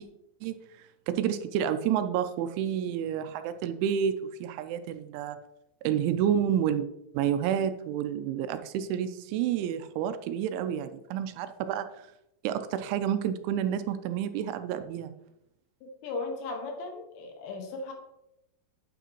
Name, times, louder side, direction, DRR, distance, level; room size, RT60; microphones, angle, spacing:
voice 1, 1.1-5.4 5.8-6.9 7.1-12.1 12.4-15.1, right 9 dB, 85° right, 10 dB, 2.9 m, -29 dB
voice 2, 16.0-17.9, left 3 dB, 70° left, 3 dB, 3.4 m, -36 dB
9.7 x 9.3 x 3.0 m, 0.84 s
omnidirectional pair, 5.5 m